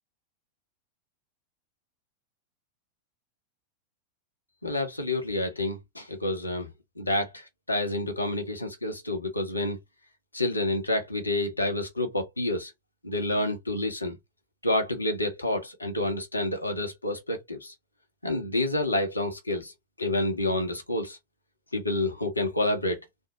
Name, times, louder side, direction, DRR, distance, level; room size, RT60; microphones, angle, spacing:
voice 1, 4.6-6.7 7.0-9.8 10.3-12.7 13.0-14.2 14.6-17.7 18.2-19.7 20.0-21.2 21.7-23.0, left 1 dB, 85° left, 0.8 m, -28 dB
3.5 x 2.1 x 2.7 m
figure-of-eight pair, 90°, 0 cm